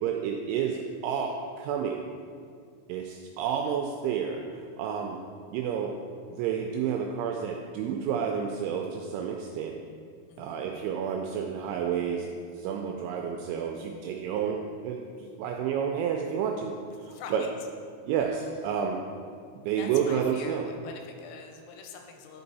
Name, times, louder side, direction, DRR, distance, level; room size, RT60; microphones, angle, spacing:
voice 1, 0.0-2.1 2.9-5.2 5.5-5.9 6.3-9.8 10.4-16.7 17.0-17.4 18.0-19.0 19.6-20.7, right 7 dB, 85° right, 2 dB, 2.7 m, -30 dB
voice 2, 10.3-10.7 17.0-17.5 19.8-22.4, left 5 dB, 85° left, 3 dB, 3.4 m, -44 dB
10.0 x 5.6 x 4.0 m, 2.3 s
omnidirectional pair, 5.9 m